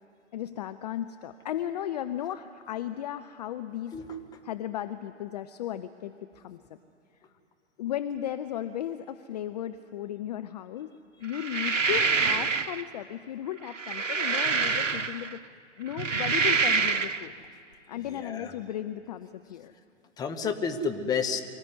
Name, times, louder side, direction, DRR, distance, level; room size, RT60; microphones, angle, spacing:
voice 1, 0.3-4.0 4.4-6.8 7.8-10.9 11.2-17.3 17.9-19.7, left 11 dB, 35° left, 11 dB, 0.6 m, -35 dB
voice 2, 3.9-4.4 17.9-18.5 20.2-21.4, left 5 dB, 10° left, 4 dB, 1.1 m, -31 dB
sound 1, 11.3-12.8 13.6-15.4 15.9-17.2, right 5 dB, 85° right, 0.9 m, -26 dB
24.5 x 15.0 x 9.6 m, 2.6 s
figure-of-eight pair, 120°, 37 cm